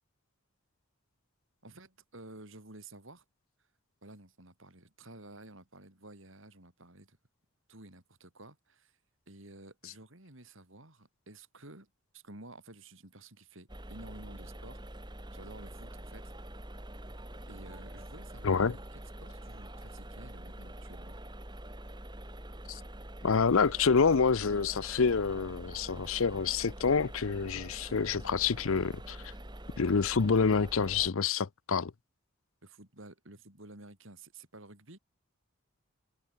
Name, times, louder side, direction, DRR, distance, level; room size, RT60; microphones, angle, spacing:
voice 1, 1.6-3.2 4.0-7.2 7.7-8.9 9.3-14.8 15.3-16.2 17.5-21.2 32.6-35.0, right 2 dB, 60° right, 4.5 m, -52 dB
sound 1, 13.7-31.1, right 1 dB, 20° right, 3.7 m, -45 dB
voice 2, 18.4-18.8 22.7-22.8 23.2-29.2 29.8-31.9, left 5 dB, 70° left, 0.6 m, -27 dB
head